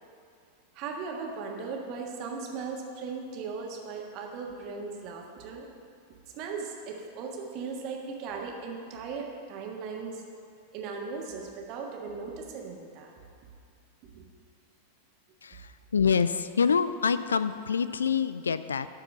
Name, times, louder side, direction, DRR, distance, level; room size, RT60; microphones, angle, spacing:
voice 1, 0.7-5.7 6.3-10.2 10.7-13.2 14.1-14.2, right 5 dB, 40° right, 1 dB, 1.5 m, -38 dB
voice 2, 15.4-18.9, left 6 dB, 70° left, 14 dB, 0.3 m, -26 dB
12.0 x 4.8 x 7.5 m, 2.4 s
figure-of-eight pair, 90°, 0 cm